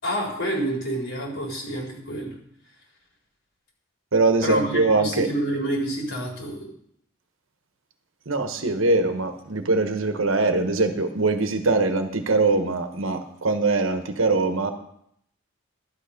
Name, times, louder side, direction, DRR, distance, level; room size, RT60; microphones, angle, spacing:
voice 1, 0.0-2.3 4.4-6.7, right 1 dB, 65° left, -1 dB, 4.1 m, -28 dB
voice 2, 4.1-5.3 8.3-14.7, right 3 dB, 70° right, 7 dB, 1.2 m, -22 dB
12.0 x 8.3 x 5.2 m, 0.72 s
head